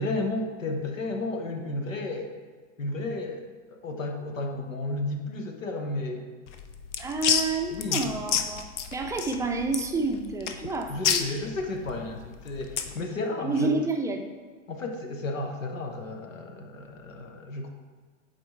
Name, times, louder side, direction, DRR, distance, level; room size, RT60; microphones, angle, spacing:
voice 1, 0.0-2.4 2.8-6.3 7.7-8.0 10.9-13.8 14.7-17.7, left 2 dB, 90° left, 4 dB, 1.0 m, -33 dB
sound 1, 6.5-13.0, left 8 dB, 65° left, 0.7 m, -30 dB
voice 2, 7.0-8.7 8.9-11.3 13.4-14.3, right 3 dB, 10° right, 3 dB, 0.4 m, -29 dB
7.7 x 4.3 x 3.2 m, 1.5 s
hypercardioid pair, 100°, 38 cm